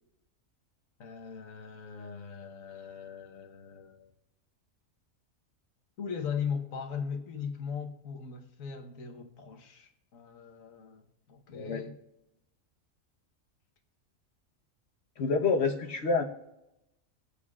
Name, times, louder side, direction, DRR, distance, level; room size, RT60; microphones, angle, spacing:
voice 1, 1.0-4.1 6.0-12.0, left 6 dB, 75° left, 1.5 m, -39 dB
voice 2, 15.2-16.2, left 4 dB, 55° left, 1.1 m, -27 dB
23.5 x 8.4 x 2.4 m
omnidirectional pair, 1.4 m